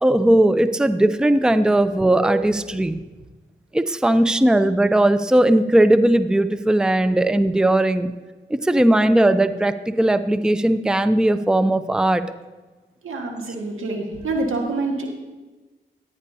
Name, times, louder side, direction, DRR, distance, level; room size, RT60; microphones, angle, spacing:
voice 1, 0.0-3.0 3.7-8.1 8.5-12.2, right 1 dB, 5° right, 11 dB, 0.5 m, -18 dB
voice 2, 13.0-15.1, right 2 dB, 85° right, 1 dB, 1.7 m, -26 dB
14.5 x 9.7 x 2.8 m, 1.2 s
cardioid pair, 40°, 21 cm